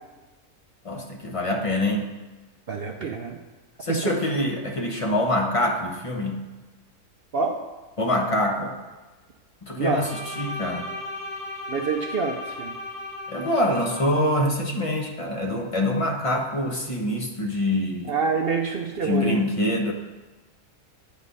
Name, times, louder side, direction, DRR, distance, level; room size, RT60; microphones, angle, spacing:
voice 1, 0.8-2.1 3.8-6.4 8.0-8.7 9.6-10.1 10.4-10.9 13.3-18.1 19.0-19.9, left 1 dB, 30° left, 1 dB, 0.7 m, -25 dB
voice 2, 2.7-3.4 3.9-4.2 7.3-7.6 9.8-10.1 11.7-12.8 18.1-19.4, right 5 dB, 65° right, 2 dB, 0.6 m, -26 dB
Bowed string instrument, 9.8-14.4, left 2 dB, 80° left, 1.7 m, -36 dB
9.6 x 4.1 x 5.3 m, 1.2 s
omnidirectional pair, 1.7 m